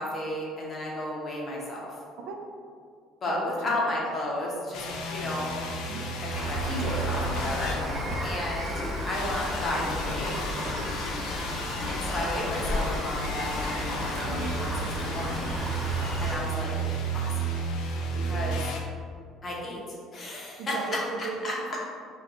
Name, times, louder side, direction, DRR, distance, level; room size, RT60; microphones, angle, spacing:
voice 1, 0.0-1.9 3.2-5.5 6.5-8.7 9.0-10.3 11.9-15.4 16.2-16.7 17.1-17.5 18.1-18.6 19.4-19.8 20.1-20.7 21.4-21.8, left 1 dB, 30° left, -4 dB, 0.9 m, -33 dB
voice 2, 3.3-3.8 5.9-6.1 8.0-8.3 18.2-18.3 20.6-21.8, right 4 dB, 75° right, 2 dB, 0.5 m, -37 dB
sound 1, 4.7-8.5 9.1-18.8, right 2 dB, 70° left, 0.5 m, -33 dB
Rain, 6.3-16.4, left 1 dB, 30° right, 1.5 m, -33 dB
4.5 x 2.3 x 3.7 m, 2.2 s
cardioid pair, 145°, 0 cm